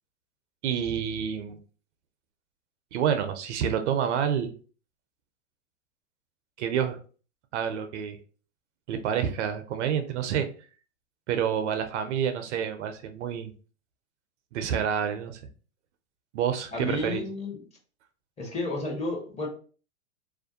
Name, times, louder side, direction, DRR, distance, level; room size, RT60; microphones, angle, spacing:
voice 1, 0.6-1.6 2.9-4.5 6.6-7.0 7.5-8.2 8.9-10.5 11.3-13.5 14.5-15.4 16.3-17.2, right 8 dB, 65° right, 8 dB, 0.5 m, -28 dB
voice 2, 16.7-17.6 18.4-19.5, left 2 dB, 15° left, -1 dB, 0.8 m, -31 dB
2.4 x 2.2 x 2.6 m, 0.39 s
hypercardioid pair, 105°, 39 cm